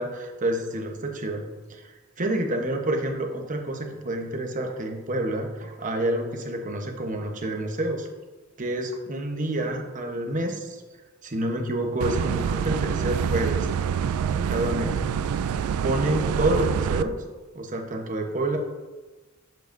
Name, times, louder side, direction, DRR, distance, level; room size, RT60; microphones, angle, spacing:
voice 1, 0.0-1.4 1.7-8.1 8.6-10.8 11.2-13.7 14.3-15.0 15.8-17.1 17.5-18.6, right 1 dB, 40° right, 2 dB, 1.0 m, -28 dB
sound 1, 12.0-17.0, right 7 dB, 85° right, 0.3 m, -26 dB
7.8 x 7.4 x 2.6 m, 1.3 s
head